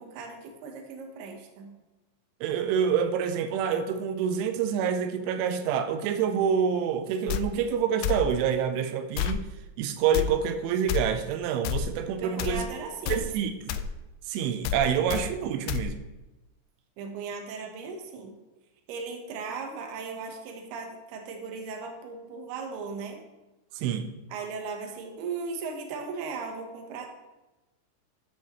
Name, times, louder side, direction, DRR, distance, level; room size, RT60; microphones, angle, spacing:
voice 1, 0.0-1.7 12.2-13.3 17.0-18.3 18.9-23.2 24.3-27.1, right 4 dB, 70° right, 3 dB, 2.9 m, -37 dB
voice 2, 2.4-9.5 9.8-12.6 13.1-13.8 14.3-16.0 23.8-24.1, right 7 dB, 90° right, 8 dB, 3.2 m, -27 dB
sound 1, 7.3-7.4 8.0-8.2 9.2-9.4 10.1-10.3 10.9-11.0 11.6-11.8 12.4-12.6 13.1-13.2 13.7-13.9 14.6-14.8 15.1-15.2 15.7-15.8, left 10 dB, 85° left, 2.6 m, -28 dB
13.5 x 8.4 x 3.1 m, 1.1 s
omnidirectional pair, 5.4 m